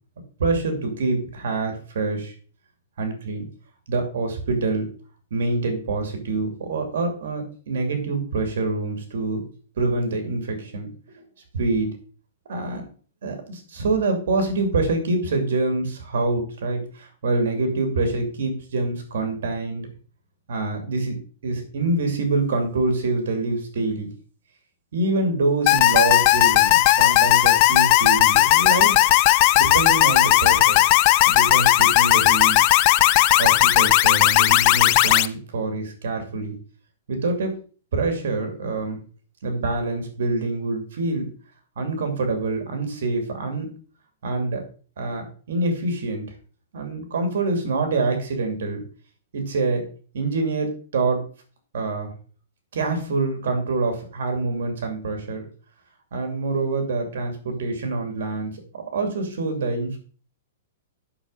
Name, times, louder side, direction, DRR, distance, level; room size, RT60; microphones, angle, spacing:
voice 1, 0.4-2.3 3.0-3.5 3.9-4.9 5.3-9.4 9.8-10.9 11.5-11.9 12.5-12.9 13.2-19.9 20.5-24.1 24.9-29.0 29.5-30.8 31.2-32.7 33.4-36.6 37.1-37.6 37.9-39.0 39.4-41.3 41.8-43.7 44.2-44.6 45.0-46.3 46.7-48.8 49.3-49.8 50.1-51.2 51.7-52.1 52.7-55.4 56.1-60.0, right 3 dB, 60° right, 5 dB, 2.7 m, -25 dB
sound 1, 25.7-35.3, left 15 dB, 25° left, 0.4 m, -16 dB
8.8 x 6.2 x 5.6 m, 0.40 s
hypercardioid pair, 180°, 0 cm